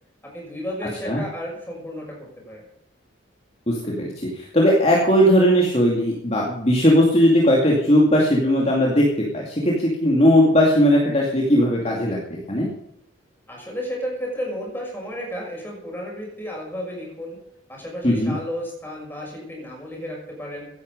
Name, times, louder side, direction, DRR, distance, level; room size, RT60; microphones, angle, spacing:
voice 1, 0.2-2.7 13.5-17.4 17.7-20.6, equal, 10° left, -2 dB, 6.2 m, -33 dB
voice 2, 3.7-12.7 18.0-18.3, equal, 30° left, -2 dB, 2.5 m, -18 dB
16.5 x 11.0 x 5.4 m, 0.81 s
head